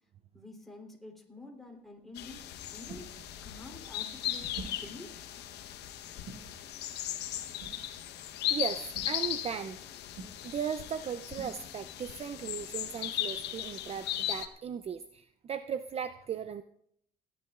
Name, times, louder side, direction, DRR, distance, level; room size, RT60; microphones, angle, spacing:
voice 1, 0.3-2.4 2.7-5.2, left 2 dB, ahead, -1 dB, 3.5 m, -49 dB
sound 1, 1.6-12.1, right 3 dB, 80° right, 5.5 m, -52 dB
sound 2, 2.2-14.5, left 12 dB, 80° left, 1.0 m, -37 dB
voice 2, 8.5-9.8 10.4-16.6, right 7 dB, 35° right, 11 dB, 0.5 m, -37 dB
29.0 x 11.0 x 2.4 m, 0.67 s
cardioid pair, 110°, 17 cm